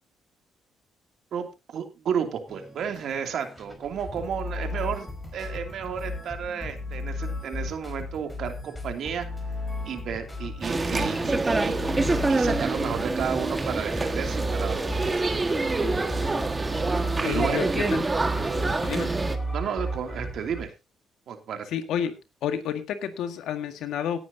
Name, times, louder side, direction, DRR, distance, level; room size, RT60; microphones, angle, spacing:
voice 1, 1.7-9.3 9.9-11.8 12.3-15.2 17.2-17.6 19.5-20.7 21.3-21.7, right 7 dB, 70° right, 5 dB, 2.7 m, -32 dB
sound 1, 2.5-20.6, equal, 15° left, 4.9 m, -34 dB
sound 2, 10.6-19.4, right 3 dB, 25° right, 1.7 m, -26 dB
voice 2, 17.2-18.1 18.8-19.1 21.7-22.2 22.4-24.2, left 9 dB, 80° left, 8 dB, 1.8 m, -30 dB
18.0 x 9.7 x 2.8 m, 0.26 s
cardioid pair, 90°, 0 cm